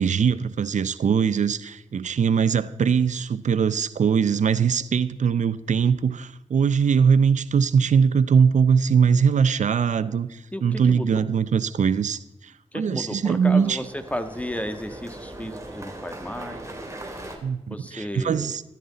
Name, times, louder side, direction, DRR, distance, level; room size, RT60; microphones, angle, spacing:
voice 1, 0.0-12.2 12.7-13.8 17.4-18.6, right 6 dB, 90° right, 0.6 m, -21 dB
sound 1, 9.4-9.9 13.1-17.4, right 1 dB, 25° right, 2.8 m, -40 dB
voice 2, 10.5-11.3 12.7-16.6 17.7-18.6, left 1 dB, 10° left, 1.5 m, -33 dB
14.0 x 14.0 x 4.1 m
cardioid pair, 60°, 12 cm